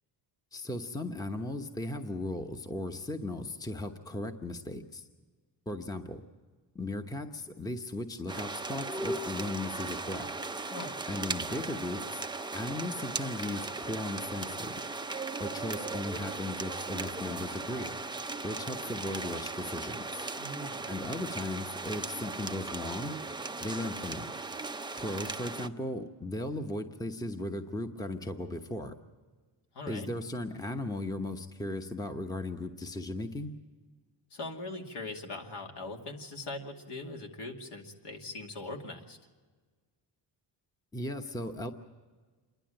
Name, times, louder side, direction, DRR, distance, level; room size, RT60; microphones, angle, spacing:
voice 1, 0.5-5.0 5.7-6.2 6.7-10.3 11.1-12.2 12.5-14.8 15.4-18.0 18.4-20.3 20.9-23.2 23.6-24.3 24.9-28.9 29.9-33.5 40.9-41.7, left 1 dB, 10° left, 6 dB, 1.0 m, -37 dB
sound 1, 8.3-25.7, right 3 dB, 10° right, 0.6 m, -37 dB
voice 2, 20.4-20.9 29.7-30.1 34.3-39.2, left 2 dB, 65° left, 2 dB, 2.5 m, -41 dB
27.5 x 11.5 x 8.9 m, 1.4 s
cardioid pair, 110°, 44 cm